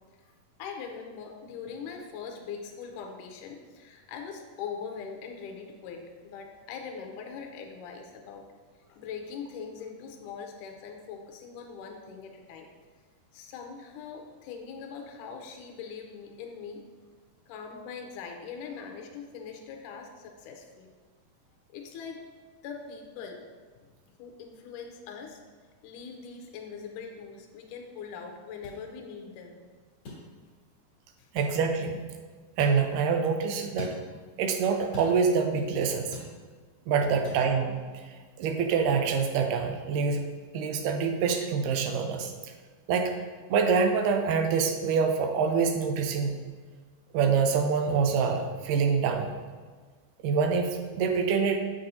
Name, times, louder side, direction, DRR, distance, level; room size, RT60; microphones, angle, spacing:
voice 1, 0.6-8.5 8.9-12.7 13.3-16.8 17.5-20.9 21.7-22.3 22.6-23.4 23.8-23.9 24.2-25.4 25.8-29.6 31.2-31.3, left 6 dB, 80° left, 3 dB, 2.1 m, -41 dB
sound 1, 28.6-28.8 30.0-30.2 31.4-31.6 32.6-32.8 33.8-34.0 34.9-35.2 36.1-36.3 37.2-37.4, left 3 dB, 55° left, 2.6 m, -40 dB
voice 2, 31.3-32.0 32.6-33.9 34.4-36.1 36.9-37.8 38.4-40.2 40.5-42.3 42.9-43.1 43.5-46.3 47.1-49.3 50.2-51.6, right 5 dB, 80° right, 4 dB, 2.1 m, -25 dB
7.0 x 6.1 x 2.6 m, 1.5 s
omnidirectional pair, 3.9 m